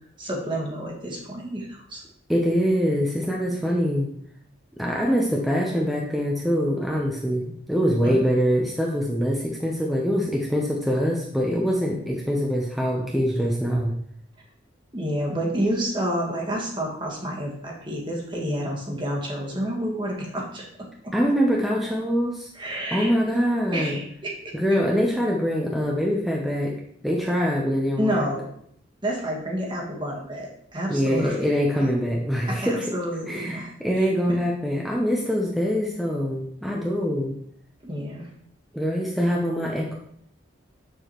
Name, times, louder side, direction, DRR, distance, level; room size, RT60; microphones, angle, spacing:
voice 1, 0.2-2.0 8.0-8.1 14.9-21.1 22.5-23.4 23.7-24.5 28.0-28.5 29.0-31.5 32.5-33.7 34.0-34.4 37.8-38.3, right 1 dB, 25° right, -1 dB, 1.4 m, -29 dB
voice 2, 2.3-4.1 4.8-13.9 21.1-22.5 22.9-24.0 24.5-26.7 27.0-28.2 30.9-32.8 33.3-37.3 38.7-39.9, equal, ahead, -3 dB, 0.7 m, -24 dB
7.1 x 6.6 x 3.0 m, 0.67 s
head